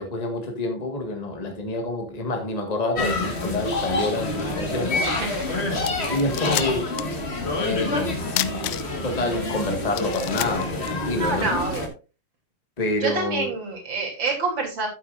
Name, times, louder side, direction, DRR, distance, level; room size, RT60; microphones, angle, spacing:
voice 1, 0.0-4.9 6.1-6.9 7.6-8.1 8.5-8.7 9.0-11.5 12.8-13.5, left 2 dB, 50° left, 0.4 m, -27 dB
sound 1, 2.9-11.9, left 2 dB, 30° left, 1.1 m, -27 dB
voice 2, 5.2-5.6 11.2-11.9 13.0-14.9, right 3 dB, 35° right, 3.6 m, -27 dB
sound 2, 5.8-7.2 7.5-7.6 8.3-9.2 9.6-9.7 9.9-11.5, left 16 dB, 80° left, 1.8 m, -30 dB
12.0 x 8.7 x 2.5 m
omnidirectional pair, 3.8 m